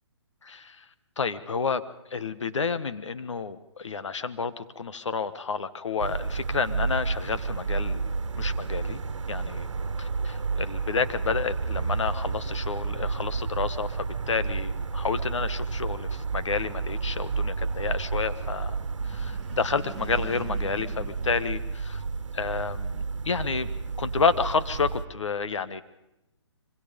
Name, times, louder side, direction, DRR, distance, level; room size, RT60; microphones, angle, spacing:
voice 1, 0.4-0.8 1.2-1.8 2.1-9.0 9.3-9.7 10.0-18.8 19.1-22.0 22.3-23.7 24.0-25.8, left 5 dB, 80° left, 11 dB, 1.5 m, -30 dB
sound 1, 6.0-25.1, right 4 dB, 85° right, 1.3 m, -31 dB
sound 2, 18.8-22.4, right 5 dB, ahead, 3.1 m, -46 dB
26.5 x 24.5 x 5.3 m, 0.92 s
hypercardioid pair, 150°, 15 cm